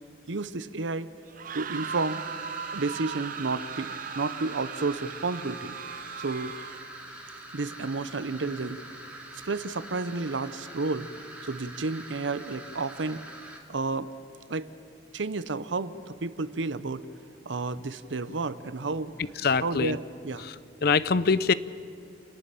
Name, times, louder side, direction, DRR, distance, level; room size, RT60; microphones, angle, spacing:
voice 1, 0.3-1.1 1.5-2.2 2.7-5.8 6.2-6.5 7.5-8.8 9.3-11.1 11.4-13.2 13.7-14.1 14.5-14.7 15.1-17.0 17.5-19.1 19.6-20.4, right 3 dB, 80° right, 15 dB, 0.8 m, -31 dB
sound 1, 1.3-7.0, right 7 dB, 45° right, 0.6 m, -38 dB
sound 2, 1.7-13.6, right 1 dB, 5° right, 2.3 m, -44 dB
voice 2, 19.4-20.0 20.4-20.5 20.8-21.5, left 5 dB, 55° left, 17 dB, 0.5 m, -23 dB
29.0 x 11.0 x 8.9 m, 2.6 s
head